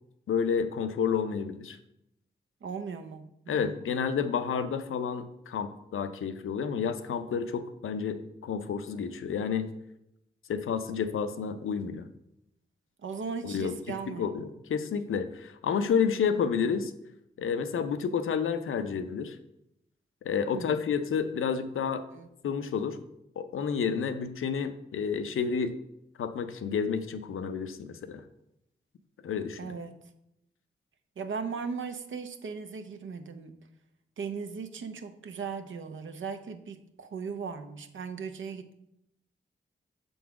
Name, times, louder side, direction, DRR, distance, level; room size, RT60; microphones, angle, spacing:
voice 1, 0.3-1.8 3.5-9.7 10.5-12.1 13.4-16.9 17.4-19.4 20.2-22.0 22.4-23.0 23.4-25.8 26.2-28.2 29.2-29.6, left 6 dB, 85° left, 9 dB, 0.6 m, -30 dB
voice 2, 2.6-3.9 13.0-14.5 20.5-20.8 22.1-22.3 29.6-30.0 31.2-33.6 34.2-38.8, right 5 dB, 70° right, 8 dB, 0.7 m, -38 dB
6.9 x 3.9 x 4.7 m, 0.81 s
cardioid pair, 65°, 21 cm